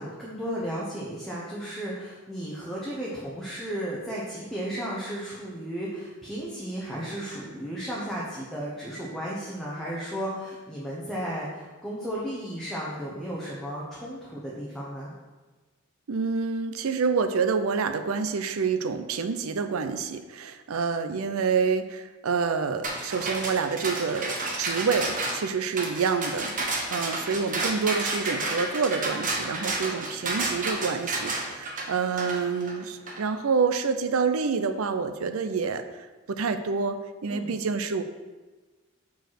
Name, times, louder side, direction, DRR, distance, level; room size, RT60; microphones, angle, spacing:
voice 1, 0.0-15.1 37.3-37.5, equal, ahead, -7 dB, 1.0 m, -34 dB
voice 2, 16.1-26.6 26.9-38.0, right 5 dB, 85° right, 10 dB, 0.5 m, -27 dB
sound 1, 22.8-33.2, right 2 dB, 40° right, 1.0 m, -31 dB
5.1 x 4.7 x 5.9 m, 1.3 s
head